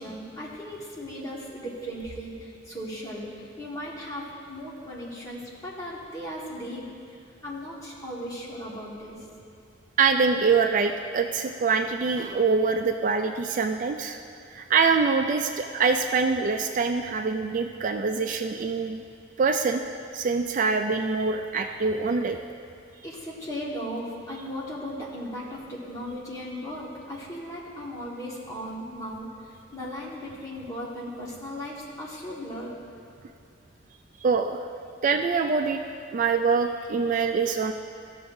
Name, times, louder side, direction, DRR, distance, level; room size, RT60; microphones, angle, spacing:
voice 1, 0.0-7.2 7.4-9.3 23.0-32.8, equal, 20° left, -6 dB, 1.6 m, -37 dB
voice 2, 10.0-14.2 14.5-19.0 19.4-19.8 20.1-22.4 34.2-34.6 35.0-35.8 36.1-37.7, right 4 dB, 45° right, 5 dB, 0.3 m, -24 dB
15.5 x 6.7 x 2.7 m, 2.5 s
head